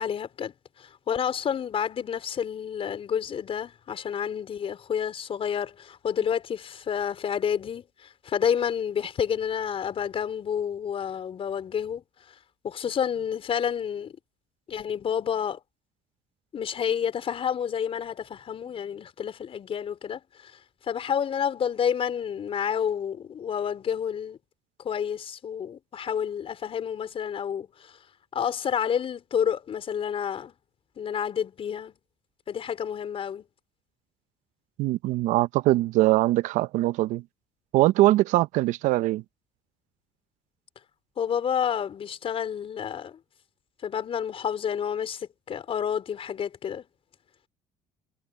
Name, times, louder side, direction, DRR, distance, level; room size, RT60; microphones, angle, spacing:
voice 1, 0.0-12.0 12.6-14.2 14.7-15.6 16.5-20.5 20.8-24.4 24.8-28.0 28.3-30.5 31.0-31.9 32.5-33.5 41.2-43.2 43.8-46.8, left 8 dB, 50° left, 4.6 m, -29 dB
voice 2, 34.8-37.2 37.7-39.2, right 17 dB, 75° right, 0.8 m, -22 dB
supercardioid pair, 80°, 13 cm